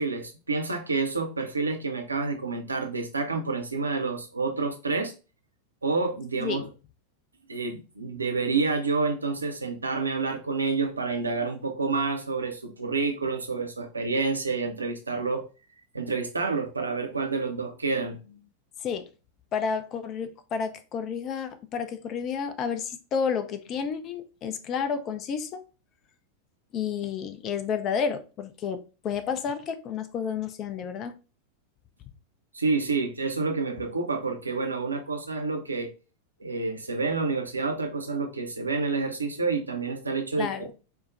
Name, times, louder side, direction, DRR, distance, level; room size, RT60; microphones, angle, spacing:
voice 1, 0.0-5.1 5.8-6.6 7.5-15.4 15.9-18.4 32.5-35.9 36.4-40.7, right 4 dB, 80° right, 0.6 m, -28 dB
voice 2, 19.5-25.6 26.7-31.2 40.4-40.7, left 6 dB, 35° left, 0.5 m, -31 dB
4.5 x 2.1 x 2.4 m
figure-of-eight pair, 90°, 0 cm